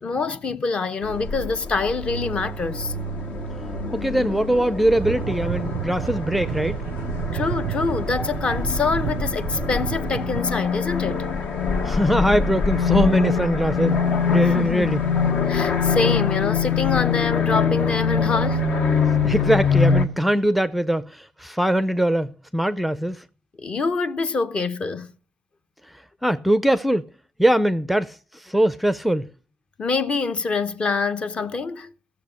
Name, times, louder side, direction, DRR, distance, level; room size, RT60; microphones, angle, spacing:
voice 1, 0.0-2.9 7.3-11.3 14.4-14.9 15.5-18.7 23.6-25.1 29.8-31.9, left 4 dB, 35° left, 0.9 m, -25 dB
sound 1, 1.0-20.0, left 5 dB, 65° left, 1.9 m, -24 dB
voice 2, 3.9-6.8 11.8-14.0 14.3-15.0 19.2-23.2 25.9-27.1 27.4-29.3, right 1 dB, ahead, 0.5 m, -22 dB
sound 2, 4.9-10.4, right 13 dB, 85° right, 0.5 m, -31 dB
16.0 x 7.0 x 6.5 m
cardioid pair, 125°, 3 cm